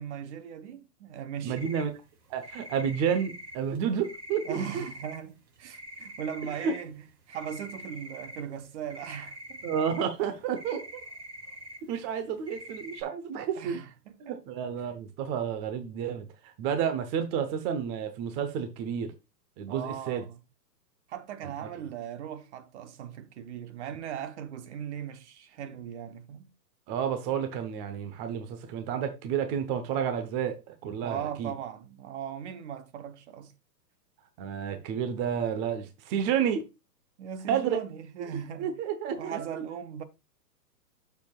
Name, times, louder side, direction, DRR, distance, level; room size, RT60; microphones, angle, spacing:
voice 1, 0.0-1.6 4.4-7.0 7.3-9.8 13.6-14.4 19.7-20.4 21.1-26.5 31.0-33.5 37.2-38.7 39.1-40.0, right 9 dB, 45° right, 1.1 m, -39 dB
voice 2, 1.4-1.9 2.3-4.8 6.6-6.7 9.6-10.8 11.9-13.8 14.2-19.1 19.6-20.2 26.9-31.5 34.4-36.6 37.5-37.8 38.6-39.4, right 8 dB, 25° right, 0.9 m, -30 dB
sound 1, 1.6-1.9 2.4-5.2 5.5-6.9 7.3-11.9 12.2-13.0, equal, 75° right, 3.3 m, -45 dB
9.2 x 7.0 x 2.4 m
hypercardioid pair, 140°, 50 cm